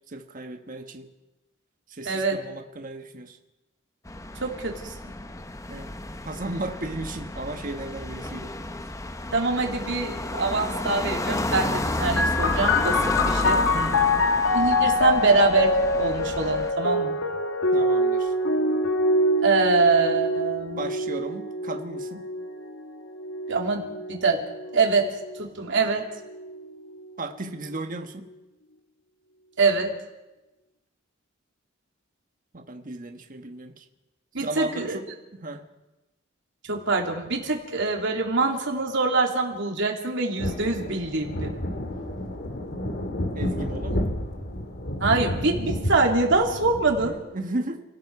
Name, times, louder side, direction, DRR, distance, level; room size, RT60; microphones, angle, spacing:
voice 1, 0.1-1.1 1.9-3.4 5.7-5.9 6.2-8.5 13.7-14.3 17.7-18.3 20.8-22.3 27.2-28.3 32.5-33.8 34.4-35.7 43.3-44.1 46.9-47.8, right 2 dB, 40° right, 6 dB, 1.3 m, -35 dB
voice 2, 2.0-2.4 4.4-4.9 9.3-13.0 13.3-13.6 14.5-17.2 19.4-20.8 23.5-24.4 24.7-25.1 25.4-26.0 29.6-29.9 34.3-35.0 36.7-41.6 45.0-47.2, right 3 dB, 65° right, 1 dB, 3.2 m, -24 dB
sound 1, 4.1-16.7, left 1 dB, 15° left, 0.8 m, -31 dB
sound 2, 12.2-25.4 26.3-27.0, left 1 dB, 80° left, 1.4 m, -25 dB
sound 3, 40.4-47.1, left 1 dB, 55° left, 2.2 m, -31 dB
30.0 x 18.0 x 4.9 m, 1.0 s
head